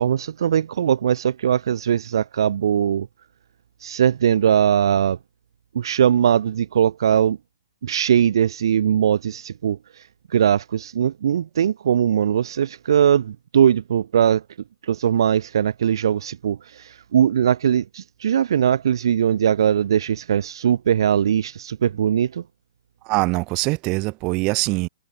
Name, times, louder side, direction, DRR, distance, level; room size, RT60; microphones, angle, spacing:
voice 1, 0.0-3.1 3.8-5.2 5.7-7.4 7.8-14.4 14.8-22.4, right 9 dB, 60° right, 0.6 m, -20 dB
voice 2, 23.0-24.9, right 25 dB, 25° right, 1.6 m, -23 dB
hypercardioid pair, 170°, 3 cm